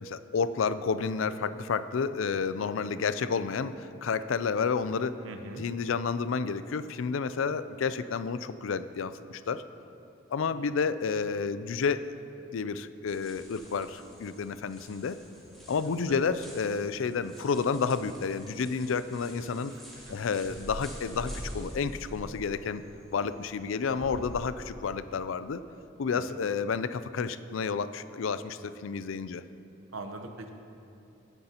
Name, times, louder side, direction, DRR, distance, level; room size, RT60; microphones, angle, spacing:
voice 1, 0.0-5.2 5.6-9.6 10.3-12.1 12.5-15.2 15.7-19.7 20.1-22.8 23.1-25.6 26.0-29.4, left 5 dB, 80° left, 13 dB, 0.4 m, -30 dB
voice 2, 5.2-5.7 10.5-10.6 16.0-16.2 19.7-20.2 26.1-26.4 29.9-30.5, right 2 dB, 80° right, 5 dB, 0.9 m, -42 dB
sound 1, 13.1-24.4, equal, ahead, 1.9 m, -46 dB
17.0 x 9.5 x 2.9 m, 2.7 s
head